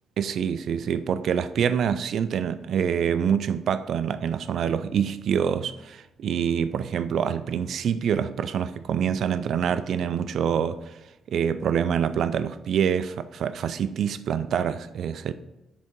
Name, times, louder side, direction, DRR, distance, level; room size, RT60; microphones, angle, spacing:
voice 1, 0.2-11.0 11.3-15.3, right 8 dB, 65° right, 0.3 m, -26 dB
8.0 x 3.7 x 4.5 m
cardioid pair, 90°, 0 cm